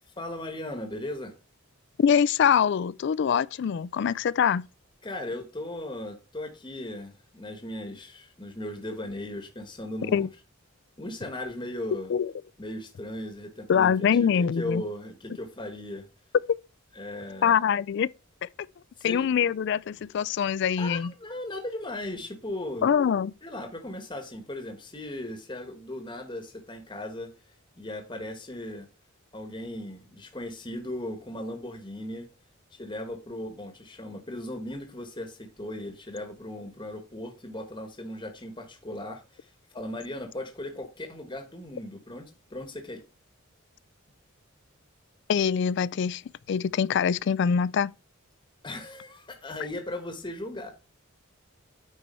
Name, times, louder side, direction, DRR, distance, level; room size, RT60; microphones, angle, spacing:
voice 1, 0.2-1.3 5.0-10.3 11.0-12.1 12.6-16.1 16.9-17.6 19.0-19.5 20.8-22.9 23.4-27.3 27.8-28.9 29.3-32.3 32.7-43.0 48.6-50.7, left 1 dB, 20° left, 1.1 m, -37 dB
voice 2, 2.0-4.7 10.1-10.3 12.1-12.3 13.7-14.8 16.5-16.6 17.4-18.1 18.4-18.5 19.0-21.1 22.8-23.3 45.3-46.2 46.5-47.9, left 7 dB, 55° left, 0.3 m, -24 dB
9.1 x 4.5 x 4.3 m
head